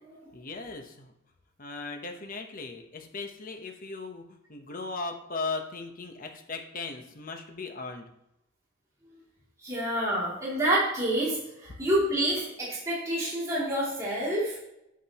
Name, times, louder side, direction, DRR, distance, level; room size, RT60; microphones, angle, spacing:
voice 1, 0.3-1.1 1.6-8.1, left 3 dB, 45° left, 4 dB, 1.1 m, -38 dB
voice 2, 9.6-14.6, right 1 dB, 15° right, -8 dB, 2.9 m, -28 dB
8.6 x 7.7 x 3.0 m, 0.84 s
head